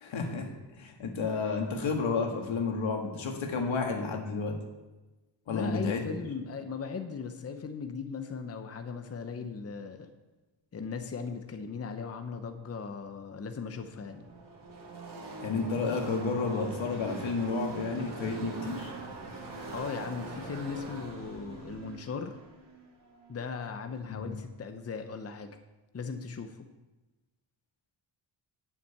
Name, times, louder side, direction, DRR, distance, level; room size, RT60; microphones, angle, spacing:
voice 1, 0.0-4.6 5.5-6.1 15.4-18.9 24.2-24.3, left 4 dB, 80° left, 2 dB, 1.9 m, -31 dB
voice 2, 5.5-10.1 10.7-14.3 19.7-22.4 23.3-25.5 25.9-26.6, left 5 dB, 30° left, 7 dB, 0.7 m, -38 dB
Car passing by / Race car auto racing, 13.8-23.9, right 3 dB, 60° right, 3.3 m, -43 dB
8.3 x 7.4 x 8.1 m, 1.1 s
wide cardioid pair, 140°, 46 cm